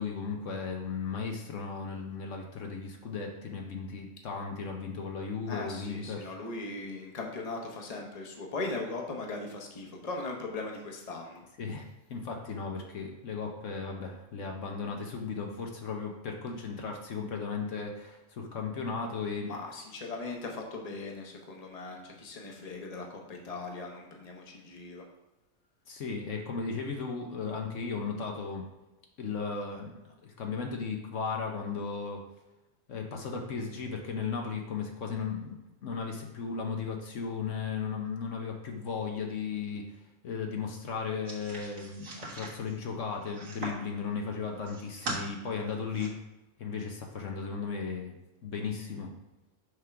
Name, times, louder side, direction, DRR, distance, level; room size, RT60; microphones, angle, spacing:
voice 1, 0.0-6.3 11.6-11.8 12.1-19.5 25.9-28.7 29.2-32.2 32.9-35.6 35.8-39.8 40.2-46.1 46.6-48.2 48.4-49.1, left 5 dB, 70° left, 2 dB, 1.2 m, -36 dB
voice 2, 5.5-11.4 19.5-25.0, left 3 dB, 30° left, 1 dB, 1.1 m, -39 dB
sound 1, 41.3-43.9 44.4-45.2 45.7-46.1, right 2 dB, 75° right, 2.0 m, -40 dB
6.6 x 3.6 x 5.9 m, 1.0 s
omnidirectional pair, 1.4 m